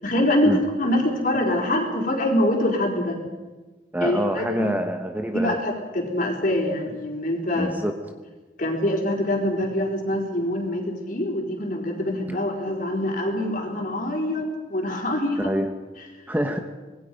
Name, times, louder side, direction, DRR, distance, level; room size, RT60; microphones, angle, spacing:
voice 1, 0.0-3.2 4.0-4.7 5.3-7.7 8.6-15.5 16.0-16.1, left 1 dB, 45° left, 1 dB, 4.3 m, -24 dB
voice 2, 3.9-5.6 7.5-7.9 12.3-12.4 15.4-15.7 16.3-16.6, equal, 10° right, 5 dB, 1.1 m, -26 dB
25.5 x 20.5 x 5.3 m, 1.2 s
head